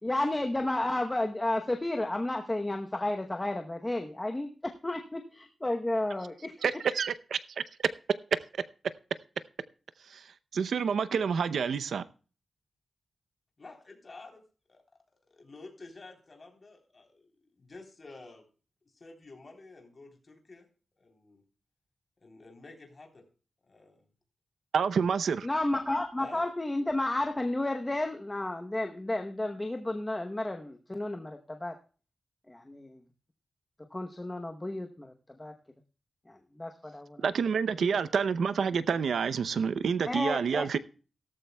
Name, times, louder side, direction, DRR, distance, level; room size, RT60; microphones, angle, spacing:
voice 1, 0.0-6.5 25.4-31.8 32.5-33.0 33.9-35.1 35.4-35.5 36.3-37.2 37.8-37.9 40.0-40.8, left 1 dB, 15° left, 0.9 m, -32 dB
voice 2, 6.6-7.6 8.5-8.7 10.0-12.0 24.7-25.5 37.2-40.8, right 6 dB, 80° right, 0.6 m, -28 dB
voice 3, 13.6-14.4 14.7-14.8 15.3-18.5 18.8-20.7 21.0-21.4 22.2-23.3 23.7-24.1 26.2-26.5, left 3 dB, 35° left, 3.5 m, -50 dB
16.5 x 14.0 x 2.3 m
wide cardioid pair, 155°, 0 cm